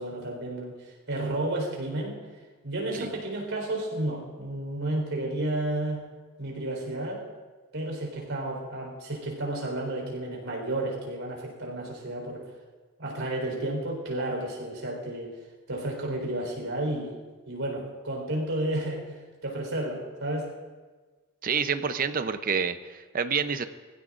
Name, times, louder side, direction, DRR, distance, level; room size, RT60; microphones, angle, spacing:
voice 1, 0.0-2.2 2.6-6.0 6.4-7.3 7.7-12.5 13.0-15.3 15.7-17.1 17.5-20.5, right 1 dB, 60° right, -1 dB, 4.2 m, -32 dB
voice 2, 21.4-23.7, right 6 dB, 40° right, 10 dB, 0.6 m, -28 dB
22.0 x 15.5 x 2.5 m, 1.4 s
head